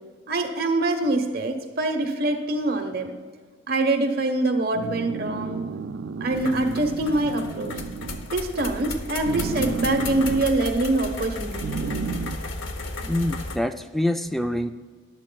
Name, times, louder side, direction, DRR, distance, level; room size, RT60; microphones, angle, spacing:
voice 1, 0.3-3.1 3.7-5.6 6.2-7.8 8.3-12.1, right 2 dB, 55° right, 4 dB, 1.0 m, -24 dB
sound 1, 4.7-8.3 9.2-10.5 11.6-12.4, right 5 dB, 70° right, 0.4 m, -32 dB
sound 2, 6.3-13.6, left 2 dB, 80° left, 0.8 m, -34 dB
voice 2, 13.0-14.7, left 1 dB, ahead, 8 dB, 0.3 m, -25 dB
13.5 x 10.5 x 2.3 m, 1.5 s
head